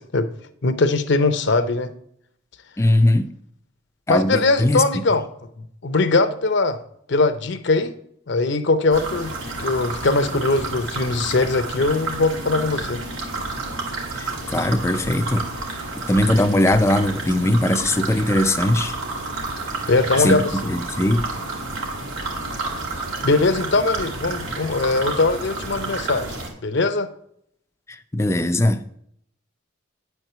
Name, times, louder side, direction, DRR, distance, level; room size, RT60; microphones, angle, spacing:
voice 1, 0.6-1.9 4.1-5.3 5.8-6.8 7.1-7.9 8.3-9.3 9.6-13.0 19.9-20.7 23.0-26.3 26.6-27.1, left 3 dB, 55° left, 0.7 m, -21 dB
voice 2, 2.8-3.3 4.1-4.8 14.1-15.4 16.1-18.9 20.2-21.3 28.1-28.8, left 1 dB, 15° left, 0.5 m, -20 dB
sound 1, 8.9-26.5, right 3 dB, 75° right, 2.4 m, -30 dB
9.7 x 4.6 x 6.7 m
head